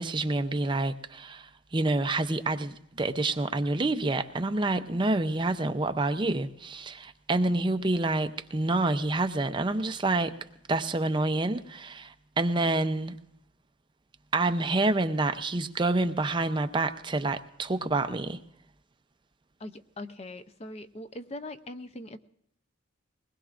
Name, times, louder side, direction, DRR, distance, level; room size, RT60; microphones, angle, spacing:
voice 1, 0.0-10.3 10.7-13.2 14.3-18.4, right 2 dB, 25° right, 0.6 m, -28 dB
voice 2, 19.6-22.2, left 1 dB, 30° left, 0.6 m, -41 dB
21.5 x 19.5 x 2.5 m
head